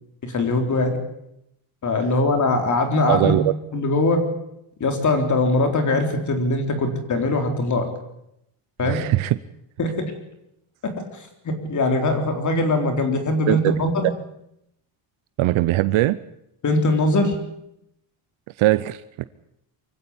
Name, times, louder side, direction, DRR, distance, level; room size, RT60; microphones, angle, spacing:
voice 1, 0.2-1.0 1.8-3.3 3.7-4.2 4.8-7.9 8.8-9.0 9.8-10.1 10.8-10.9 11.4-14.1 16.6-17.3, left 2 dB, 35° left, 5 dB, 4.0 m, -21 dB
voice 2, 3.1-3.5 8.8-9.4 13.5-13.6 15.4-16.2 18.6-19.2, right 16 dB, 80° right, 15 dB, 0.9 m, -20 dB
24.0 x 16.0 x 9.9 m, 0.82 s
cardioid pair, 165°, 48 cm